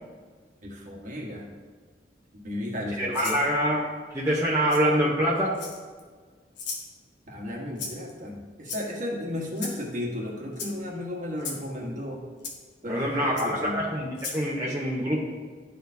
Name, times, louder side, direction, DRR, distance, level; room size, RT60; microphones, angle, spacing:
voice 1, 0.6-1.5 2.4-3.4 7.3-12.2 12.8-13.8, left 1 dB, 45° right, -2 dB, 1.4 m, -34 dB
voice 2, 3.0-3.8 4.1-5.5 12.9-15.2, equal, 15° right, -6 dB, 0.9 m, -25 dB
Rattle (instrument), 3.1-3.4 4.7-4.8 5.5-6.0 6.6-6.9 7.8-8.1 8.6-9.1 9.6-9.8 10.5-10.7 11.4-11.6 12.4-12.5 13.4-13.5 14.1-14.4, left 4 dB, 75° left, 1.2 m, -36 dB
11.5 x 4.2 x 2.7 m, 1.5 s
head